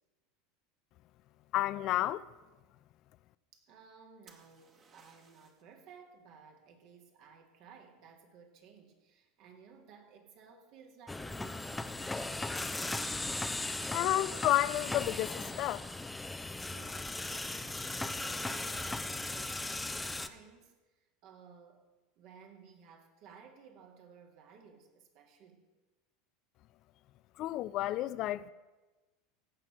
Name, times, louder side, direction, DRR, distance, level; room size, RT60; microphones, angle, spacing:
voice 1, 1.5-2.3 13.9-15.9 27.4-28.5, left 14 dB, 50° left, 0.4 m, -31 dB
voice 2, 3.5-12.3 16.7-17.8 18.0-21.9 22.2-25.7, right 6 dB, 55° right, 2.1 m, -57 dB
sound 1, 4.3-5.7 9.4-9.8, right 5 dB, 35° right, 1.8 m, -62 dB
sound 2, 11.1-20.3, left 2 dB, 10° left, 0.7 m, -37 dB
15.5 x 5.8 x 7.7 m
hypercardioid pair, 85°, 0 cm